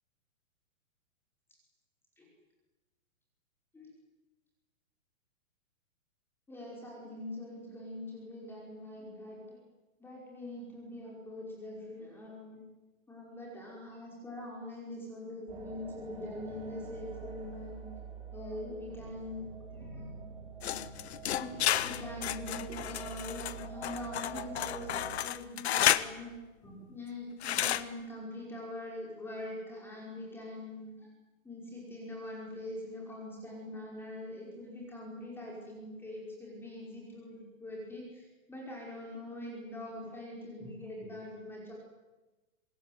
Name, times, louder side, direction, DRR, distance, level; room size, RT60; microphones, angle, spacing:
voice 1, 6.5-9.6 10.0-12.6 13.1-17.9 18.3-20.1 20.6-20.8 21.3-26.3 26.6-30.9 31.4-41.7, left 1 dB, 5° left, -2 dB, 5.4 m, -43 dB
sound 1, 15.5-25.2, right 5 dB, 10° right, 3.4 m, -46 dB
sound 2, 20.6-26.1 27.4-27.8, left 11 dB, 50° left, 1.3 m, -31 dB
26.5 x 21.5 x 9.5 m, 1.1 s
hypercardioid pair, 170°, 40 cm